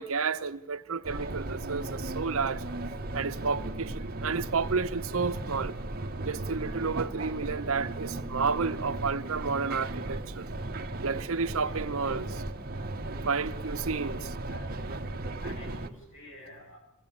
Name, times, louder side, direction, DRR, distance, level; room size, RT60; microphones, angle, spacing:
voice 1, 0.0-2.6 3.1-5.7 6.2-10.5 11.0-12.2 13.3-14.2, right 5 dB, 75° right, 0.8 m, -31 dB
sound 1, 1.0-15.9, right 2 dB, 45° right, 1.0 m, -36 dB
voice 2, 11.6-12.0 12.8-12.9 13.7-14.1 14.5-14.7 15.4-16.8, left 1 dB, 85° left, 7.8 m, -50 dB
22.5 x 17.0 x 8.8 m
head